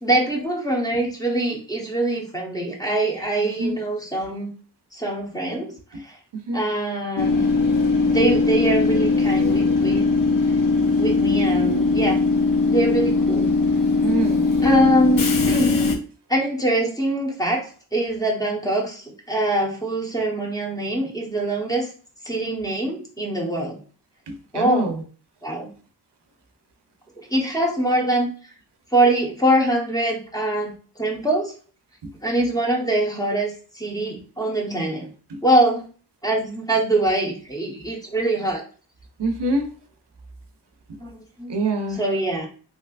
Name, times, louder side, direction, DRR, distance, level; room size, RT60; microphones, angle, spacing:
voice 1, 0.0-4.5 4.9-6.2 6.5-7.5 8.1-10.1 11.0-12.2 12.7-13.5 14.6-15.8 16.3-17.6 17.9-21.9 22.2-23.8 24.5-24.9 25.4-25.7 27.2-28.3 28.9-30.7 31.0-31.5 32.2-35.1 35.4-35.8 36.2-38.6 41.0-41.5 42.0-42.5, right 1 dB, 10° left, -2 dB, 1.0 m, -23 dB
voice 2, 3.4-3.8 5.9-6.0 6.5-6.6 13.5-13.6 14.0-14.5 24.3-25.0 32.0-32.1 35.3-35.4 39.2-39.7 41.5-42.0, right 2 dB, 80° right, 5 dB, 0.6 m, -25 dB
Train / Subway metro underground, 7.2-15.9, left 3 dB, 55° left, 0.7 m, -20 dB
3.2 x 2.9 x 2.4 m, 0.40 s
wide cardioid pair, 75°, 41 cm